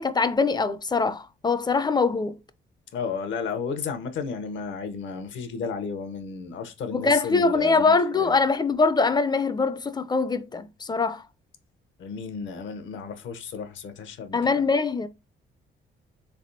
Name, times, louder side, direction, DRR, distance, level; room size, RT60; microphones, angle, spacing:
voice 1, 0.0-2.3 6.9-11.2 14.3-15.1, left 4 dB, 20° left, 0.4 m, -23 dB
voice 2, 2.9-8.4 12.0-14.7, left 5 dB, 75° left, 0.7 m, -33 dB
3.6 x 3.4 x 2.6 m
cardioid pair, 90°, 20 cm